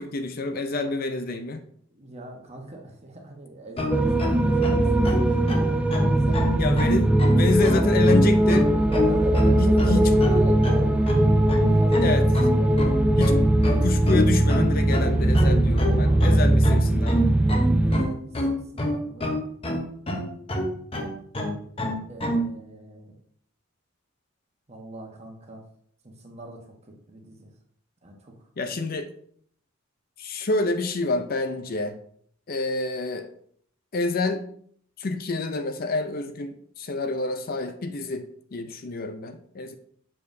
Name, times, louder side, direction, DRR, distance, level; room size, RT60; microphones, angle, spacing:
voice 1, 0.0-1.7 6.6-8.7 9.6-10.1 12.0-12.3 13.2-13.4 13.8-17.4 28.6-29.1 30.2-32.0 32.5-33.3 33.9-34.4 35.0-39.8, left 3 dB, 45° left, 7 dB, 0.5 m, -28 dB
voice 2, 1.9-5.1 5.4-6.5 7.4-7.8 8.9-10.9 11.5-12.2 12.6-12.9 15.9-16.5 17.8-19.3 22.1-23.1 24.7-25.6 26.0-26.6 27.1-27.5 28.0-28.3, right 2 dB, 30° right, 1 dB, 1.2 m, -38 dB
sound 1, 3.8-22.5, equal, 30° left, 0.9 m, -28 dB
sound 2, 3.9-18.0, right 1 dB, 5° right, 0.5 m, -20 dB
7.2 x 6.6 x 2.7 m, 0.63 s
head